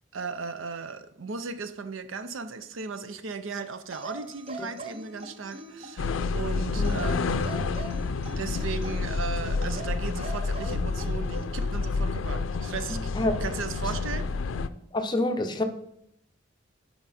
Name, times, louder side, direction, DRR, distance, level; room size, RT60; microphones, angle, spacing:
voice 1, 0.1-7.5 8.0-8.1 8.4-14.3, right 5 dB, 85° right, 0.6 m, -36 dB
sound 1, 3.9-6.2 6.8-9.2 9.6-11.8 12.9-13.1, right 2 dB, 30° right, 0.6 m, -42 dB
sound 2, 6.0-14.7, left 4 dB, 85° left, 0.4 m, -29 dB
voice 2, 14.9-15.6, left 2 dB, 20° left, 0.6 m, -26 dB
9.8 x 4.6 x 4.2 m
head